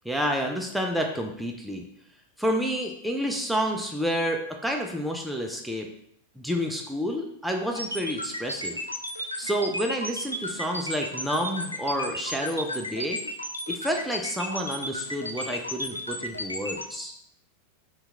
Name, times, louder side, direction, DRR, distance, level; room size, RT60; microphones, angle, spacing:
voice 1, 0.1-1.8 2.4-5.9 6.4-8.8 9.4-13.2 13.7-17.1, equal, ahead, 1 dB, 0.3 m, -29 dB
sound 1, 7.8-16.9, left 1 dB, 90° left, 0.3 m, -33 dB
2.8 x 2.2 x 3.6 m, 0.70 s
figure-of-eight pair, 90°, 0 cm